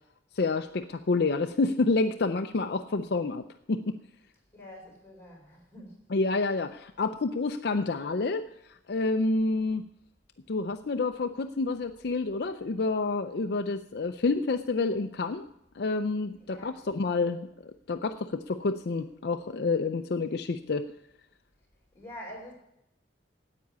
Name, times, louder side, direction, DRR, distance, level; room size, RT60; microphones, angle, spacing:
voice 1, 0.4-3.4 3.7-4.0 6.1-8.5 8.9-9.8 10.5-15.5 15.8-20.9, left 3 dB, 60° left, 8 dB, 0.5 m, -28 dB
voice 2, 4.5-6.0 16.4-16.8 21.9-22.5, equal, 15° left, -1 dB, 4.4 m, -46 dB
9.7 x 8.5 x 9.2 m, 0.81 s
head